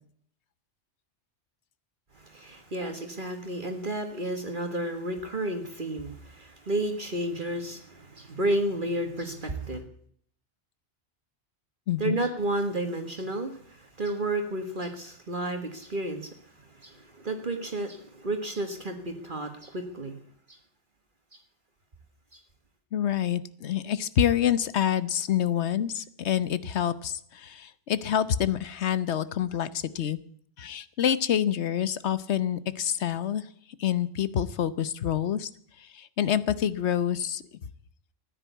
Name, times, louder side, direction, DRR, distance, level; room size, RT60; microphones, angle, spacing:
voice 1, 2.3-9.8 12.0-13.5 14.0-16.3 16.8-20.2, right 1 dB, 45° right, 5 dB, 1.8 m, -31 dB
voice 2, 11.9-12.2 22.9-30.2 30.6-33.4 33.8-35.5 36.0-37.4, left 9 dB, 75° left, 16 dB, 1.1 m, -27 dB
14.5 x 10.0 x 8.2 m, 0.62 s
omnidirectional pair, 1.2 m